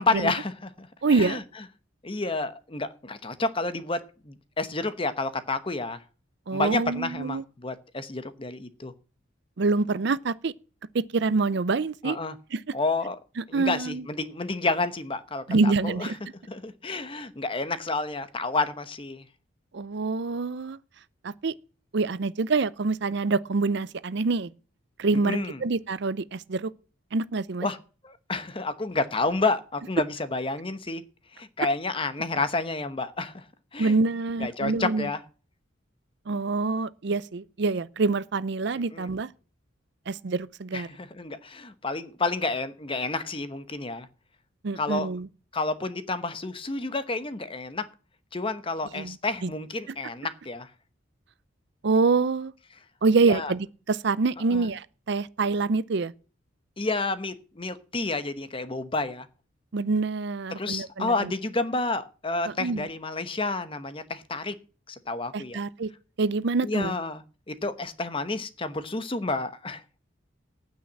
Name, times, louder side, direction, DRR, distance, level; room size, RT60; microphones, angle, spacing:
voice 1, 0.0-1.4 2.0-6.0 6.5-8.9 12.0-12.3 12.7-13.2 13.5-16.1 16.5-19.3 25.2-25.6 27.6-27.8 28.0-31.0 31.3-33.4 33.7-34.0 34.4-35.2 38.9-39.1 40.7-44.1 44.7-45.1 45.5-47.9 48.3-50.7 53.2-53.5 54.5-54.6 56.8-59.3 60.5-64.6 64.9-65.6 66.6-69.8, left 3 dB, 25° left, 1.0 m, -30 dB
voice 2, 1.0-1.4 6.5-7.4 9.6-10.5 10.9-12.2 12.5-12.6 13.5-14.0 15.5-16.2 19.7-20.8 21.2-21.5 21.9-24.5 25.0-26.7 27.1-27.7 33.8-35.1 36.3-39.3 40.1-40.9 44.6-45.3 48.9-49.2 49.4-49.5 51.8-52.5 53.0-56.1 59.7-61.3 62.5-62.9 65.3-65.9 66.2-67.0, right 3 dB, 60° right, 0.5 m, -26 dB
9.3 x 8.7 x 7.3 m
head